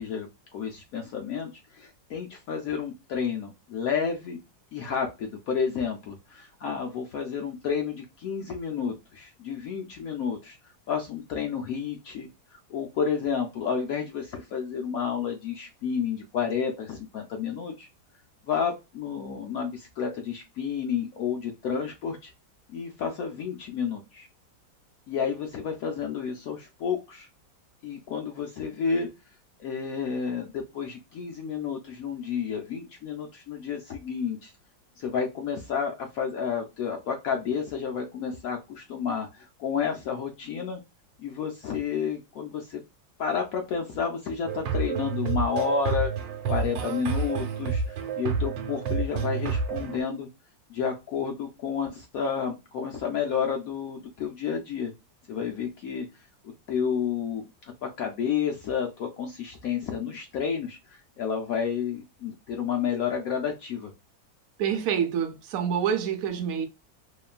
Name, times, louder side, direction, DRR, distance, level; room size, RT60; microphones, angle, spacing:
voice 1, 0.0-4.4 4.7-10.6 10.9-12.3 12.7-17.9 18.5-22.3 22.7-24.3 25.1-27.3 27.8-29.1 29.6-34.5 35.0-40.8 41.2-42.8 43.2-46.1 46.5-50.3 50.7-54.9 55.3-56.1 56.7-57.4 57.8-63.9, left 6 dB, 75° left, 0.8 m, -30 dB
sound 1, 44.5-50.0, right 5 dB, 90° right, 1.3 m, -29 dB
voice 2, 64.6-66.7, right 8 dB, 70° right, 0.9 m, -27 dB
3.0 x 2.2 x 2.4 m
omnidirectional pair, 2.0 m